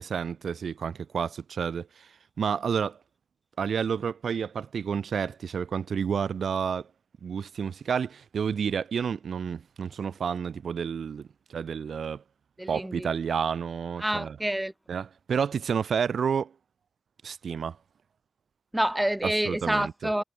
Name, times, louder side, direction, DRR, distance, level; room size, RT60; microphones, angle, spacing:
voice 1, 0.0-2.1 2.4-3.0 3.6-6.9 7.2-12.2 12.7-14.4 14.9-16.5 17.2-17.8 19.2-19.9, right 7 dB, 90° right, 3.2 m, -30 dB
voice 2, 12.6-13.1 14.0-14.7 18.7-20.2, right 1 dB, 5° right, 1.1 m, -27 dB
wide cardioid pair, 140°, 0 cm